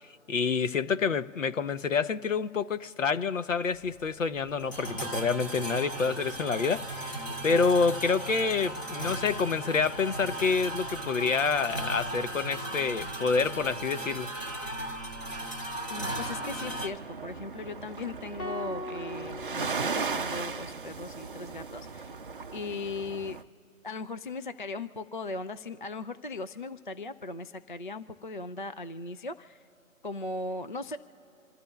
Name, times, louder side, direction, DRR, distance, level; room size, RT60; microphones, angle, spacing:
voice 1, 0.3-7.2 7.4-14.3, left 5 dB, 65° left, 0.9 m, -28 dB
sound 1, 3.7-16.9, right 1 dB, 15° left, 0.9 m, -36 dB
voice 2, 15.9-22.1 22.5-23.4 23.8-29.6 30.0-31.0, left 3 dB, 40° left, 0.4 m, -38 dB
sound 2, 16.0-23.4, right 5 dB, 40° right, 0.5 m, -37 dB
sound 3, 18.4-20.7, left 1 dB, 85° left, 1.3 m, -41 dB
27.5 x 14.5 x 2.3 m
figure-of-eight pair, 150°, 42 cm